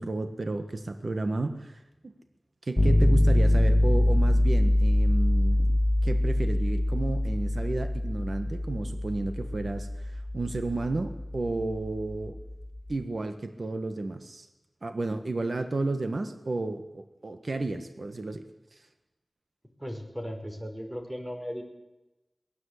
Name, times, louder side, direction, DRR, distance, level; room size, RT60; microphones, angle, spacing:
voice 1, 0.0-2.1 2.6-12.4 12.9-14.5 14.8-18.4 18.7-18.8, right 2 dB, 60° right, 8 dB, 1.6 m, -32 dB
sound 1, 2.8-12.6, left 1 dB, 20° left, 4.1 m, -24 dB
voice 2, 19.8-21.6, equal, 15° right, 4 dB, 5.4 m, -36 dB
23.0 x 19.0 x 8.4 m, 0.99 s
wide cardioid pair, 60°, 0 cm